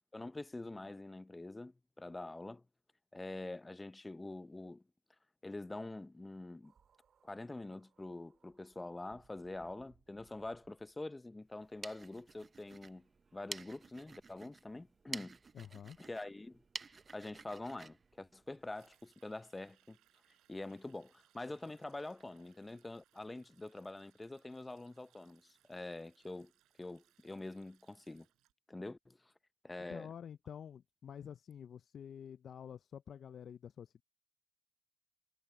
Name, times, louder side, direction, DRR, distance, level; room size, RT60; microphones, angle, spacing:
voice 1, 0.1-2.6 3.1-4.8 5.4-6.7 7.2-13.1 13.3-15.4 16.0-16.6 16.9-20.0 20.5-26.5 26.8-28.3 28.7-29.2 29.6-30.1, left 2 dB, 15° left, 0.6 m, -45 dB
sound 1, 6.6-11.1 11.9-12.0 13.4-13.5, right 7 dB, 55° right, 1.9 m, -71 dB
sound 2, 11.5-19.0, right 4 dB, 35° right, 0.5 m, -51 dB
voice 2, 15.5-16.0 29.9-34.0, left 8 dB, 55° left, 0.4 m, -49 dB
Sink (filling or washing), 18.5-28.5, right 15 dB, 90° right, 5.0 m, -73 dB
cardioid pair, 90°, 0 cm